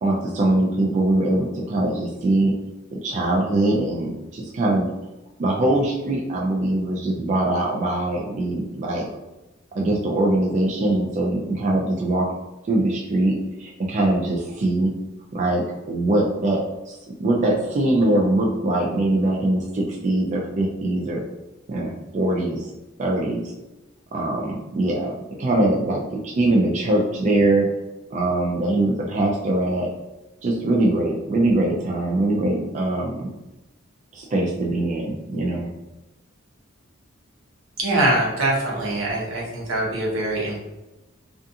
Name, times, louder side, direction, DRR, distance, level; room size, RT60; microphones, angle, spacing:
voice 1, 0.0-2.5 2.9-4.9 5.4-9.1 9.7-12.3 12.7-14.9 15.3-16.6 16.9-21.2 21.7-22.7 23.0-23.5 24.1-27.7 28.1-29.9 30.4-33.3 34.1-35.7, right 1 dB, 35° right, -2 dB, 0.3 m, -22 dB
voice 2, 37.8-40.6, right 1 dB, 80° right, -3 dB, 0.9 m, -23 dB
2.4 x 2.4 x 2.6 m, 1.0 s
head